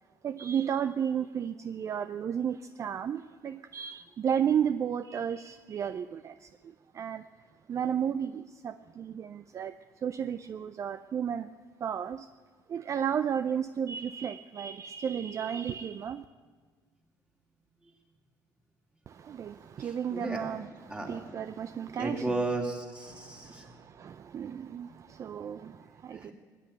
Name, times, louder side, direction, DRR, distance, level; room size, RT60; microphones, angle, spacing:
voice 1, 0.2-7.2 7.7-11.5 11.8-12.3 12.7-16.2 19.1-22.4 23.1-26.3, right 8 dB, 40° right, 0.4 m, -33 dB
voice 2, 19.8-20.4 20.9-21.2 21.9-23.7 26.2-26.3, right 2 dB, 15° right, 2.9 m, -34 dB
17.5 x 8.5 x 8.9 m
cardioid pair, 95°, 8 cm